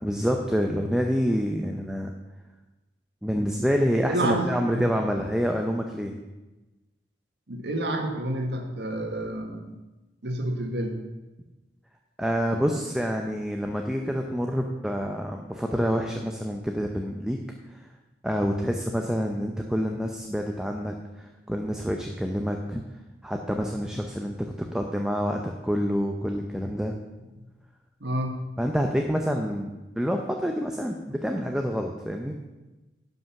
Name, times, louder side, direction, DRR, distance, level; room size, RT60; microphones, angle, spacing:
voice 1, 0.0-2.1 3.2-6.1 12.2-17.4 17.7-17.8 18.2-22.8 23.2-26.9 28.6-32.3, equal, 5° right, 2 dB, 0.6 m, -27 dB
voice 2, 4.1-4.8 7.5-9.8 10.2-11.0 28.0-28.4, right 1 dB, 80° right, 3 dB, 1.5 m, -29 dB
11.0 x 5.5 x 5.8 m, 1.1 s
head